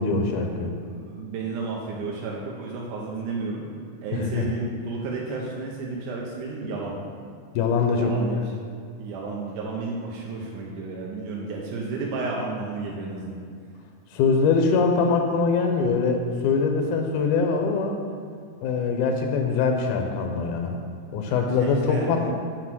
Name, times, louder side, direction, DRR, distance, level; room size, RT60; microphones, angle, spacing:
voice 1, 0.0-0.7 4.1-4.5 7.6-8.1 14.1-18.0 18.6-20.8 21.1-22.3, left 4 dB, 85° left, 3 dB, 2.1 m, -23 dB
voice 2, 0.9-3.7 4.0-7.0 8.0-8.6 9.0-13.4 21.3-22.1, right 3 dB, 90° right, -3 dB, 2.3 m, -32 dB
6.0 x 5.1 x 6.0 m, 2.2 s
omnidirectional pair, 3.6 m